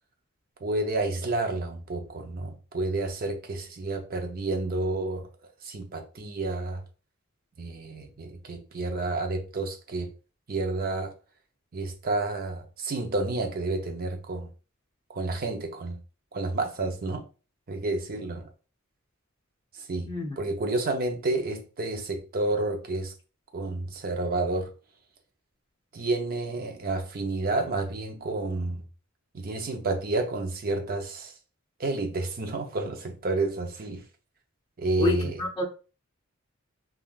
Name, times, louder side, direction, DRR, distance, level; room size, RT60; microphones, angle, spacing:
voice 1, 0.6-5.3 5.6-6.8 7.6-10.1 10.5-11.1 11.7-14.5 15.1-16.0 16.3-17.2 17.7-18.5 19.7-20.1 20.4-23.1 23.5-24.7 25.9-28.8 29.3-31.3 31.8-34.0 34.8-35.4, right 2 dB, 45° right, 0.6 m, -30 dB
voice 2, 20.0-20.4 35.0-35.6, left 4 dB, 25° left, 0.7 m, -28 dB
3.4 x 2.3 x 2.4 m
head